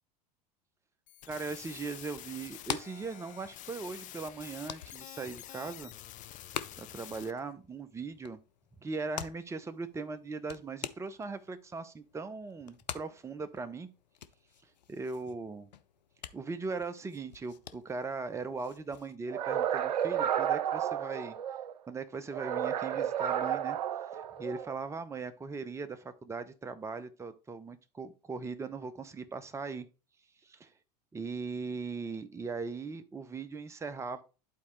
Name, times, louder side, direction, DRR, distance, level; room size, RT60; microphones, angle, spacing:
sound 1, 1.1-7.3, left 13 dB, 35° left, 0.5 m, -48 dB
voice 1, 1.3-5.9 6.8-8.4 8.8-13.9 14.9-15.7 16.3-21.4 21.9-23.8 24.1-29.9 30.4-30.7 31.1-34.2, right 4 dB, 15° right, 10 dB, 0.7 m, -39 dB
sound 2, 2.4-19.2, left 9 dB, 85° left, 0.5 m, -47 dB
sound 3, 19.3-21.7 22.3-24.7, right 9 dB, 80° right, 0.6 m, -32 dB
11.0 x 4.1 x 3.2 m, 0.33 s
hypercardioid pair, 85°, 21 cm